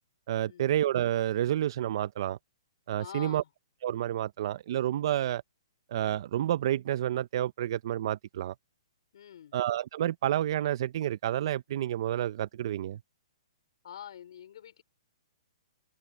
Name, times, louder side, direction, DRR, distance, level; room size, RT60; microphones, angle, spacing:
voice 1, 0.3-2.4 2.9-3.4 3.8-5.4 5.9-8.5 9.5-13.0, right 12 dB, 55° right, 0.6 m, -29 dB
voice 2, 3.0-3.5 9.1-9.6 13.8-14.8, left 10 dB, 65° left, 4.9 m, -46 dB
open air
hypercardioid pair, 150°, 3 cm